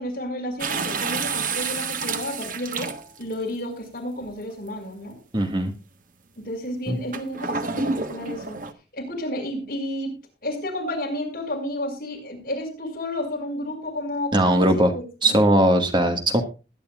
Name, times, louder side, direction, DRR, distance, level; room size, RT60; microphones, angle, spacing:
voice 1, 0.0-2.9 3.2-5.2 6.4-8.6 8.9-10.2 10.4-15.4, left 1 dB, 55° left, 1 dB, 5.9 m, -31 dB
sound 1, 0.6-3.3 4.2-4.3 7.1-8.7, right 4 dB, 50° right, 1.3 m, -29 dB
voice 2, 5.3-5.7 6.9-7.0 14.3-14.9 15.2-16.4, right 1 dB, 25° right, 5 dB, 1.8 m, -19 dB
21.0 x 10.0 x 2.4 m, 0.30 s
head